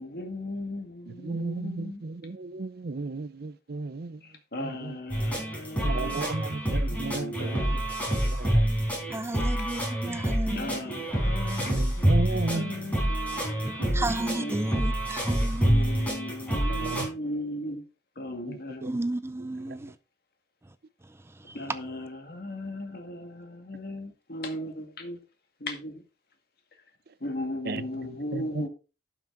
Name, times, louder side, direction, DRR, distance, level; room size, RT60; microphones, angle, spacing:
voice 1, 0.0-2.0 4.2-7.8 10.6-12.1 12.5-14.8 15.6-17.8 18.2-18.9 21.5-25.2 25.6-26.0 27.2-28.7, left 1 dB, 60° left, 2.1 m, -37 dB
voice 2, 1.2-4.2 4.6-4.9 5.8-7.6 8.4-8.7 11.6-13.1 13.8-14.0 16.7-17.1 18.8-18.9 27.7-27.8 28.3-28.6, right 3 dB, 60° right, 0.6 m, -34 dB
sound 1, 5.1-17.1, right 1 dB, 10° left, 4.3 m, -27 dB
voice 3, 9.1-10.8 13.9-15.8 18.8-19.9, right 2 dB, 15° right, 0.5 m, -33 dB
12.0 x 6.0 x 3.9 m
head